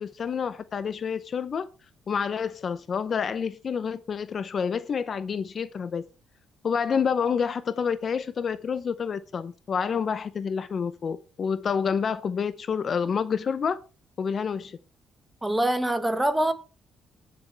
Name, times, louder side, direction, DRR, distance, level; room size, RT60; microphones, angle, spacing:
voice 1, 0.0-1.7 2.1-6.0 6.6-13.8 14.2-14.8, left 6 dB, 45° left, 0.6 m, -28 dB
voice 2, 15.4-16.5, right 1 dB, 10° right, 1.5 m, -24 dB
20.0 x 6.9 x 3.4 m
cardioid pair, 115°, 0 cm